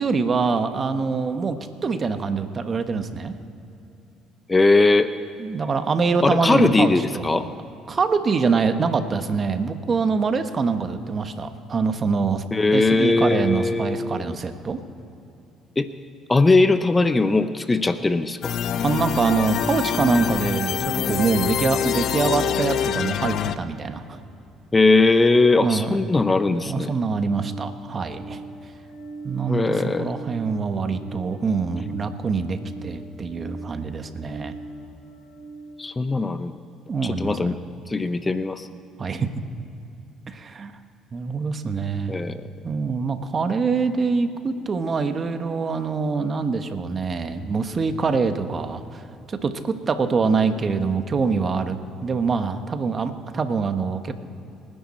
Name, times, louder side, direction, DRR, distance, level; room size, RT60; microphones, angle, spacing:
voice 1, 0.0-1.6 1.8-3.3 5.4-7.4 7.9-12.4 12.7-14.8 18.8-24.2 25.6-26.0 26.6-28.4 29.2-34.5 36.9-37.6 39.0-39.3 40.3-40.7 41.1-42.2 42.6-54.1, right 4 dB, 40° right, 9 dB, 1.2 m, -24 dB
voice 2, 4.5-5.1 6.2-7.5 12.5-14.4 15.8-15.9 16.3-18.5 24.7-26.9 29.5-30.1 35.8-36.6 37.0-37.6 37.9-38.7 42.1-42.4, left 3 dB, 20° left, 11 dB, 0.7 m, -20 dB
sound 1, 18.4-23.6, left 8 dB, 60° left, 0.6 m, -25 dB
sound 2, 25.9-35.8, right 2 dB, 85° left, 2.9 m, -41 dB
30.0 x 10.5 x 4.3 m, 2.7 s
supercardioid pair, 75°, 0 cm